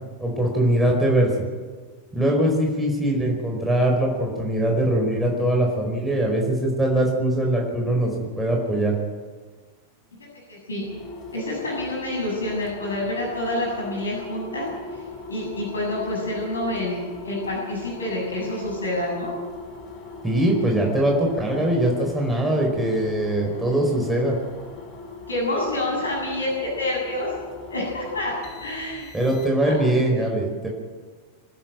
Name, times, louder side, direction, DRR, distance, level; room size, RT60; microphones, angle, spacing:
voice 1, 0.2-1.3 2.1-8.9 20.2-24.4 29.1-30.7, right 1 dB, 5° right, -1 dB, 4.7 m, -22 dB
voice 2, 10.5-10.8 11.3-15.0 15.3-17.0 17.2-19.3 25.3-27.3 27.7-28.3 28.6-29.1 29.7-29.8, left 1 dB, 75° left, -2 dB, 7.2 m, -28 dB
sound 1, 10.8-29.8, left 4 dB, 35° left, 5.8 m, -39 dB
25.5 x 12.5 x 9.2 m, 1.4 s
figure-of-eight pair, 90°, 0 cm